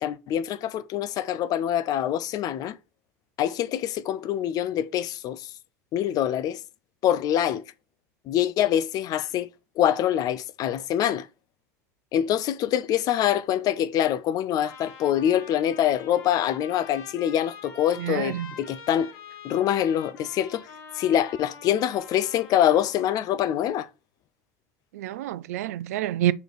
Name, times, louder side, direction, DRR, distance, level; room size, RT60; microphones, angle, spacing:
voice 1, 0.0-2.8 3.4-5.5 5.9-6.6 7.0-7.6 8.3-9.5 9.8-11.3 12.1-19.1 19.4-20.7 20.9-23.9, left 11 dB, 50° left, 0.5 m, -25 dB
Trumpet, 14.6-23.1, left 5 dB, 65° left, 1.9 m, -45 dB
voice 2, 18.0-18.5 24.9-26.3, right 13 dB, 75° right, 0.4 m, -27 dB
5.1 x 3.9 x 4.7 m
hypercardioid pair, 80°, 8 cm